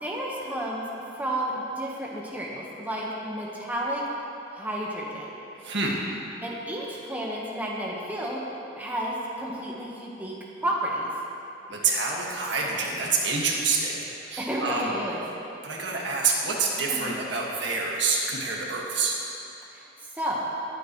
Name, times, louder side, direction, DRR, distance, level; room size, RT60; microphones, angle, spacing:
voice 1, 0.0-0.8 1.2-4.0 4.5-5.3 6.4-8.4 8.8-10.3 10.6-11.1 14.4-15.2 16.9-17.2 19.7-19.9 20.1-20.5, right 1 dB, 10° right, -4 dB, 1.3 m, -31 dB
voice 2, 5.5-6.0 11.7-14.9 15.6-19.2, right 4 dB, 65° right, -2 dB, 1.8 m, -27 dB
20.5 x 9.0 x 3.1 m, 2.8 s
head